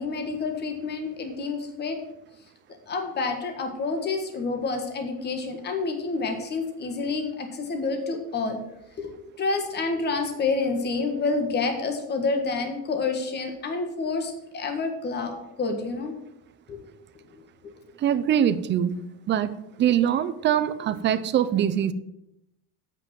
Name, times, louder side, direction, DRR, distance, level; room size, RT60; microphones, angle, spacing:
voice 1, 0.0-2.0 2.9-8.6 9.0-16.1 16.7-16.9 17.3-17.4, left 4 dB, 25° left, 5 dB, 1.5 m, -28 dB
voice 2, 18.0-19.0 19.3-19.5 19.8-21.9, right 9 dB, 30° right, 12 dB, 0.5 m, -23 dB
8.2 x 6.0 x 7.4 m, 0.84 s
cardioid pair, 160°, 38 cm